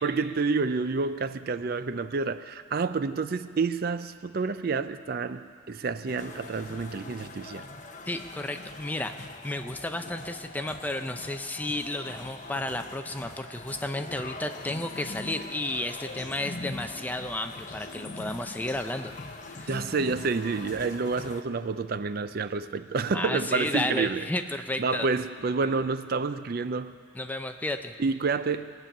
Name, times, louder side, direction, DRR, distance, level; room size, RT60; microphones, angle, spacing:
voice 1, 0.0-7.7 19.7-24.3 24.8-27.0 28.0-28.7, right 4 dB, 50° right, 12 dB, 0.4 m, -29 dB
sound 1, 6.1-21.4, left 3 dB, 40° left, 0.8 m, -42 dB
voice 2, 8.1-19.1 19.5-19.7 23.1-25.1 27.2-27.9, left 1 dB, 10° left, 7 dB, 0.5 m, -32 dB
20.0 x 6.9 x 8.9 m, 2.1 s
head